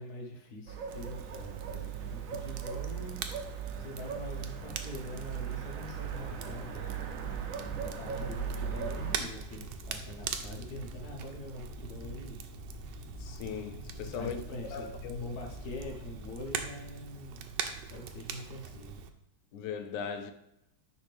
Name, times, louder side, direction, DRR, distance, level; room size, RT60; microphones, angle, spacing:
voice 1, 0.0-3.2 3.7-6.9 7.8-12.4 14.1-17.5 17.9-19.0, left 1 dB, 65° left, 1.6 m, -44 dB
sound 1, 0.7-9.2, right 7 dB, 65° right, 0.9 m, -38 dB
Crackle, 0.9-19.1, right 7 dB, 80° right, 1.2 m, -43 dB
sound 2, 5.6-16.6, left 2 dB, 25° left, 1.7 m, -48 dB
voice 2, 13.2-14.4 14.7-15.4 19.5-20.3, left 6 dB, 80° left, 1.3 m, -38 dB
9.8 x 3.5 x 3.3 m
omnidirectional pair, 1.9 m